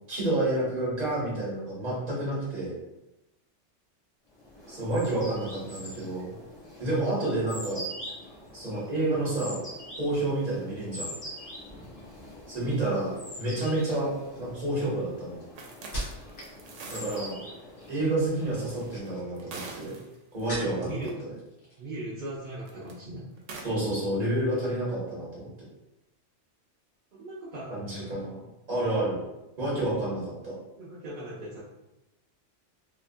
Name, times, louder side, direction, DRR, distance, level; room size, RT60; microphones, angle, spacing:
voice 1, 0.1-2.7 4.7-6.3 6.8-7.8 8.5-9.6 10.0-11.1 12.5-15.4 16.9-17.4 17.9-19.9 20.3-21.0 23.6-25.5 27.7-28.4 28.7-29.2 29.6-30.5, right 1 dB, 35° right, -7 dB, 1.1 m, -29 dB
sound 1, 4.4-19.3, equal, 25° left, 0.6 m, -44 dB
sound 2, 14.2-16.6 16.9-17.4 18.6-21.0 21.4-22.0 22.3-22.5, equal, 50° left, 1.0 m, -41 dB
sound 3, 15.6-17.3 17.9-18.0 19.0-20.5 20.9-21.1 22.6-22.9 23.4-23.6, right 3 dB, 85° right, 0.9 m, -43 dB
voice 2, 20.8-21.2 21.8-23.3 27.1-28.1 30.8-31.6, right 1 dB, 50° right, -9 dB, 0.6 m, -38 dB
2.8 x 2.3 x 2.6 m, 0.93 s
omnidirectional pair, 1.3 m